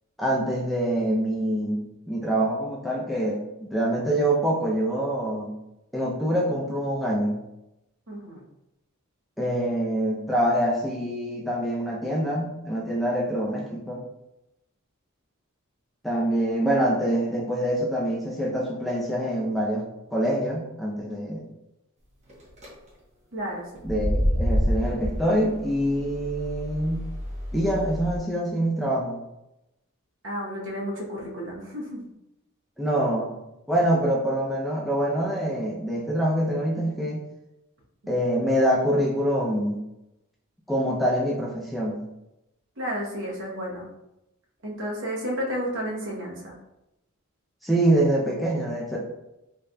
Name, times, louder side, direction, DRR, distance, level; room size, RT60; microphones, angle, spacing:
voice 1, 0.2-5.5 5.9-7.4 9.4-14.0 16.0-19.8 20.1-21.5 23.8-27.1 27.5-29.2 32.8-33.3 33.7-37.2 38.1-39.8 40.7-42.0 47.6-49.0, right 1 dB, ahead, -4 dB, 0.5 m, -25 dB
voice 2, 8.1-8.4 23.3-23.9 30.2-32.0 42.8-43.9 44.6-46.5, equal, 60° right, -3 dB, 1.0 m, -32 dB
sound 1, 22.3-22.7 23.8-28.2, equal, 35° right, 0.9 m, -28 dB
3.9 x 3.2 x 2.2 m, 0.90 s
head